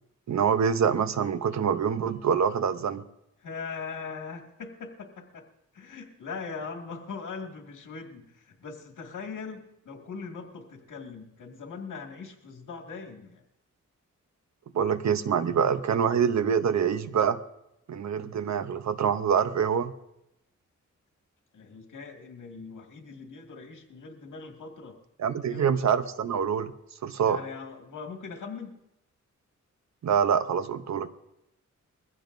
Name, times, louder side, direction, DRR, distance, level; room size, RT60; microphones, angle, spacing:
voice 1, 0.3-3.0 14.7-17.4 17.9-19.9 25.2-26.7 27.0-27.4 30.0-31.1, right 7 dB, 65° right, 12 dB, 0.8 m, -25 dB
voice 2, 3.4-5.5 5.7-13.4 21.5-25.0 25.5-25.8 27.2-28.8, left 5 dB, 80° left, 2 dB, 2.0 m, -40 dB
22.0 x 15.5 x 2.6 m, 0.85 s
wide cardioid pair, 115°, 31 cm